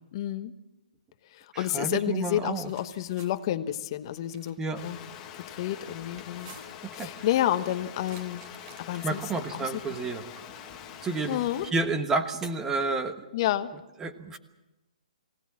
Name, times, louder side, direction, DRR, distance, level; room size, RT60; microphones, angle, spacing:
voice 1, 0.1-0.5 1.3-5.0 5.4-6.5 6.9-8.5 8.8-9.2 9.5-9.7 11.3-11.7 13.3-13.7, left 12 dB, 40° left, 10 dB, 1.2 m, -30 dB
voice 2, 1.5-2.7 4.6-4.8 7.0-7.1 9.0-10.2 11.0-11.4 11.7-13.2 14.0-14.4, right 3 dB, 10° right, 9 dB, 1.3 m, -30 dB
sound 1, 2.3-3.3 4.1-4.6 6.2-6.9 8.0-9.3, right 3 dB, 35° right, 4.2 m, -52 dB
sound 2, 4.7-11.7, left 9 dB, 20° left, 2.2 m, -44 dB
23.5 x 18.0 x 7.5 m, 1.0 s
hypercardioid pair, 145°, 4 cm